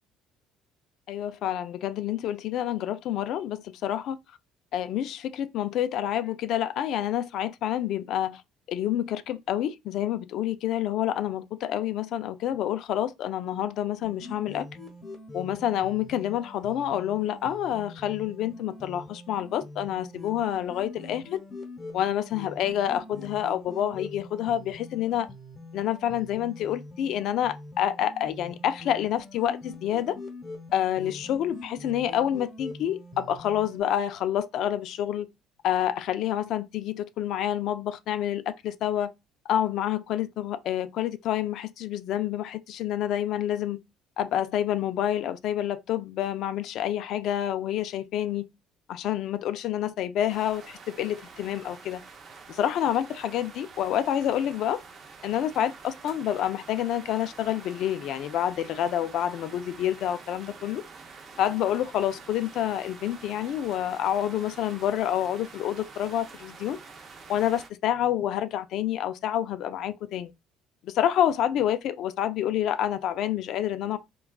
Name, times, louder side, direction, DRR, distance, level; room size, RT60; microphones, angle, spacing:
voice 1, 1.1-4.2 4.7-8.4 8.7-14.7 15.3-21.4 21.9-25.3 25.7-30.2 30.7-35.3 35.6-39.1 39.5-43.8 44.2-48.4 48.9-52.0 52.5-54.8 55.2-60.8 61.4-66.8 67.3-70.3 70.8-74.0, left 11 dB, 55° left, 0.3 m, -28 dB
sound 1, 14.0-33.8, left 2 dB, 15° left, 0.9 m, -44 dB
sound 2, 50.3-67.7, right 4 dB, 35° right, 0.5 m, -47 dB
3.5 x 2.2 x 2.3 m
cardioid pair, 150°, 0 cm